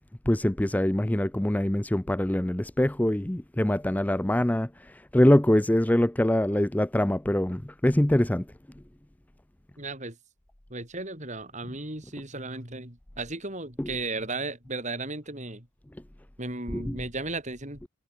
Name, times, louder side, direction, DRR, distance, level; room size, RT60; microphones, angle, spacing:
voice 1, 0.3-8.5 13.8-13.9 16.7-17.0, left 1 dB, 5° left, 0.5 m, -24 dB
voice 2, 9.8-10.2 10.7-15.7 16.4-17.8, right 3 dB, 35° right, 5.4 m, -35 dB
head